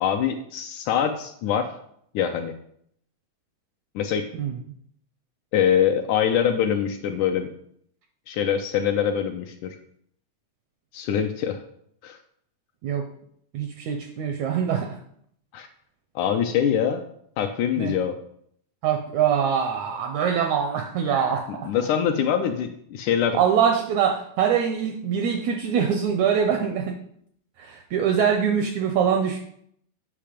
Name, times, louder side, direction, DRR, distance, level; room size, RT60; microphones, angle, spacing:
voice 1, 0.0-1.7 2.1-2.5 4.0-4.3 5.5-7.5 8.3-9.8 10.9-11.6 12.0-12.2 15.5-15.7 16.2-17.0 17.4-18.2 21.6-23.4, left 8 dB, 80° left, 6 dB, 1.8 m, -24 dB
voice 2, 13.5-15.0 17.8-17.9 18.8-21.7 23.3-27.0 27.6-29.4, right 7 dB, 85° right, 4 dB, 1.7 m, -23 dB
8.8 x 5.6 x 5.1 m, 0.68 s
omnidirectional pair, 4.0 m